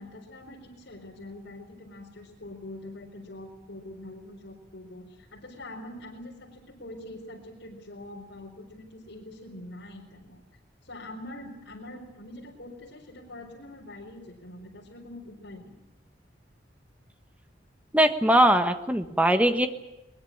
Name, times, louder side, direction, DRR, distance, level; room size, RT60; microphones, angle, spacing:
voice 1, 0.0-10.4 10.8-15.8, left 1 dB, 75° left, -2 dB, 4.5 m, -44 dB
voice 2, 17.9-19.7, right 1 dB, 10° right, 7 dB, 1.4 m, -21 dB
22.0 x 21.0 x 8.7 m, 0.95 s
head